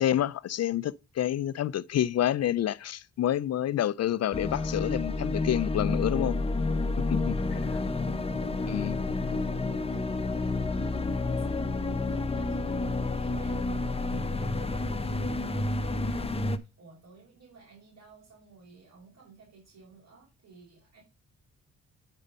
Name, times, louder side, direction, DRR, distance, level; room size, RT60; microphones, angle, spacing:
voice 1, 0.0-6.4 7.1-7.2 8.7-9.0, left 11 dB, 55° left, 0.4 m, -28 dB
sound 1, 4.3-16.6, left 3 dB, 20° left, 0.9 m, -30 dB
voice 2, 7.2-16.3 16.6-21.0, right 4 dB, 65° right, 5.4 m, -54 dB
9.9 x 5.1 x 5.4 m
cardioid pair, 85°, 30 cm